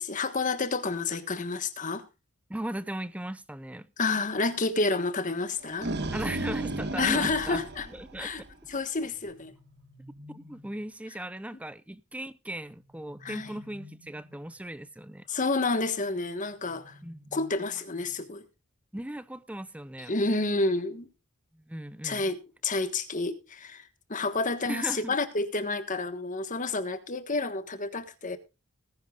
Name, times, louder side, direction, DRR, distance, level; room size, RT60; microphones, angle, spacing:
voice 1, 0.0-2.0 4.0-5.9 7.0-7.9 8.2-8.4 8.7-9.5 13.2-13.5 15.3-17.0 17.3-18.4 20.1-21.1 22.0-23.8 24.1-28.4, left 3 dB, 35° left, 1.4 m, -29 dB
voice 2, 2.5-3.9 6.1-8.3 10.3-15.3 17.0-17.3 18.9-20.1 21.5-22.3 24.7-25.2, right 1 dB, 5° right, 0.6 m, -38 dB
sound 1, 5.5-8.7, right 2 dB, 50° right, 1.4 m, -34 dB
sound 2, 9.1-10.9 12.7-14.6 16.4-18.4, left 1 dB, 70° right, 3.9 m, -53 dB
19.5 x 10.5 x 2.4 m
head